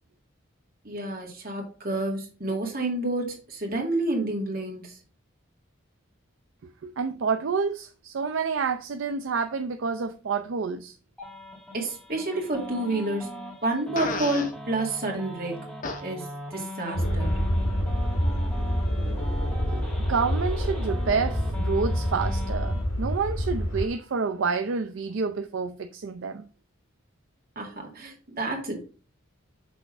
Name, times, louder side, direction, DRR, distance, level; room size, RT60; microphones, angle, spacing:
voice 1, 0.8-4.9 11.7-13.3 13.6-15.6 16.0-17.4 27.6-28.8, right 2 dB, 45° right, 2.1 m, -29 dB
voice 2, 6.8-11.0 19.7-19.8 20.1-26.5, right 5 dB, 65° right, 0.4 m, -28 dB
sound 1, 11.2-22.8, left 1 dB, 5° left, 1.9 m, -40 dB
Fart, 14.0-14.5 15.8-16.0, left 4 dB, 40° left, 0.8 m, -32 dB
sound 2, 16.9-23.9, equal, 85° left, 1.7 m, -27 dB
6.1 x 3.5 x 4.8 m
head